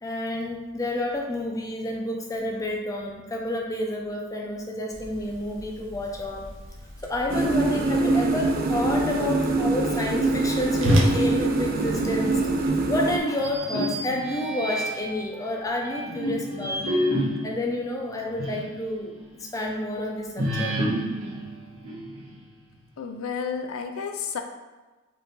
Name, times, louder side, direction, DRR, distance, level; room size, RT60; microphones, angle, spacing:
voice 1, 0.0-6.5 7.0-12.4 12.9-17.0 17.4-19.2 19.5-20.8, left 1 dB, 15° left, 0 dB, 0.5 m, -29 dB
Whoosh swoosh swish, 4.9-12.7, equal, 65° right, 0.8 m, -31 dB
sound 1, 7.3-13.2, right 2 dB, 40° right, 0.4 m, -24 dB
sound 2, 13.4-15.2 15.8-18.8 19.2-19.3 20.4-22.4, equal, 90° right, 1.2 m, -29 dB
voice 2, 23.0-24.4, left 6 dB, 80° left, 5 dB, 0.4 m, -31 dB
4.6 x 2.7 x 3.7 m, 1.2 s
head